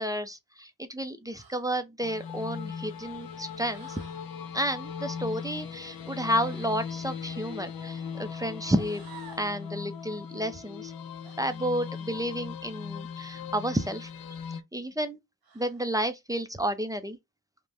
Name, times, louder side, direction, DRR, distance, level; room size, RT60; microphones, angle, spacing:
voice 1, 0.0-4.0 4.5-9.0 9.4-10.9 11.4-14.1 14.7-15.2 15.5-17.2, equal, 10° right, 0.4 m, -31 dB
sound 1, 1.3-1.7 3.7-4.2 6.3-6.8 8.6-9.6 11.2-11.4 13.5-14.0 15.4-15.9, right 5 dB, 80° right, 1.1 m, -51 dB
sound 2, 2.0-14.6, left 6 dB, 75° left, 0.6 m, -39 dB
3.4 x 2.1 x 2.4 m
wide cardioid pair, 75°, 36 cm